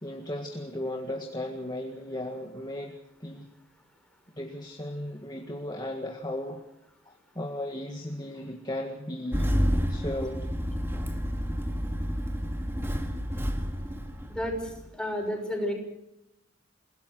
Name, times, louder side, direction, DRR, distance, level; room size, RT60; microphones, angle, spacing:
voice 1, 0.0-2.9 3.2-3.5 4.4-6.6 7.1-9.4 9.9-10.5, left 1 dB, 20° left, 2 dB, 1.9 m, -36 dB
Engine starting, 9.3-14.9, equal, 10° right, 2.0 m, -30 dB
voice 2, 15.0-15.7, left 1 dB, 5° left, 2 dB, 6.1 m, -30 dB
29.0 x 17.5 x 6.3 m, 0.85 s
head